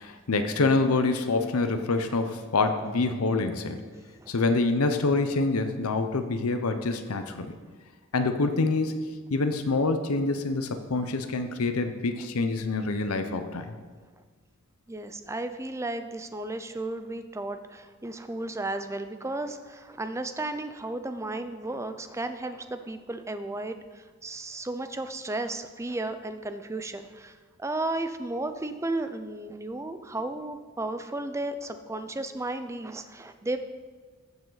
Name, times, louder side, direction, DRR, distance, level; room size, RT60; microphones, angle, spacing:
voice 1, 0.0-3.8 4.3-7.5 8.1-8.9 9.3-13.8, left 3 dB, 90° left, 8 dB, 0.7 m, -26 dB
voice 2, 14.9-33.6, right 2 dB, 15° right, 9 dB, 0.5 m, -34 dB
14.0 x 7.2 x 4.0 m, 1.5 s
head